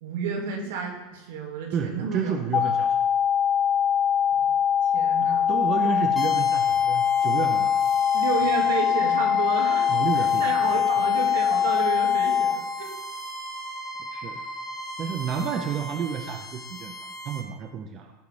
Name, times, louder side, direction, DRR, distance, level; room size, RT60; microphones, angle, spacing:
voice 1, 0.0-2.7 4.4-4.5 4.9-5.5 8.1-9.9 10.2-12.9, right 5 dB, 80° right, 1 dB, 2.6 m, -31 dB
voice 2, 1.7-3.0 5.2-7.8 9.9-11.1 14.1-14.4 15.0-16.9 17.2-18.1, right 7 dB, 40° right, 5 dB, 1.0 m, -31 dB
sound 1, 2.5-12.5, left 8 dB, 30° left, 0.8 m, -22 dB
sound 2, 6.2-17.4, right 1 dB, 5° left, 4.4 m, -38 dB
15.5 x 7.9 x 3.6 m, 1.0 s
supercardioid pair, 130°, 0 cm